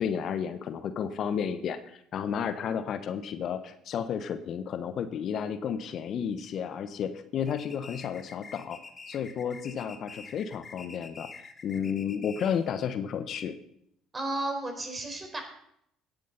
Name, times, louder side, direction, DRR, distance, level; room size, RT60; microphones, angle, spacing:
voice 1, 0.0-8.8 9.1-13.5, left 7 dB, 50° left, 11 dB, 1.0 m, -32 dB
sound 1, 7.5-12.7, left 4 dB, 30° left, 1.7 m, -47 dB
voice 2, 9.4-9.9 14.1-15.4, right 2 dB, 25° right, 4 dB, 4.2 m, -34 dB
17.0 x 10.0 x 4.0 m, 0.72 s
hypercardioid pair, 55°, 0 cm